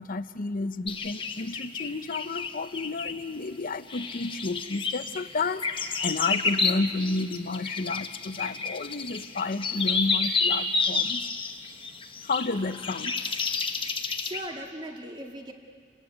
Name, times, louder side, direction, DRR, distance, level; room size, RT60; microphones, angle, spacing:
voice 1, 0.0-11.2 12.2-13.2, left 3 dB, 45° left, 12 dB, 0.7 m, -31 dB
sound 1, 0.9-3.2 3.9-14.4, left 4 dB, 25° left, 1.0 m, -30 dB
voice 2, 14.0-15.5, right 1 dB, 25° right, 2 dB, 2.0 m, -39 dB
29.0 x 15.0 x 9.7 m, 2.1 s
head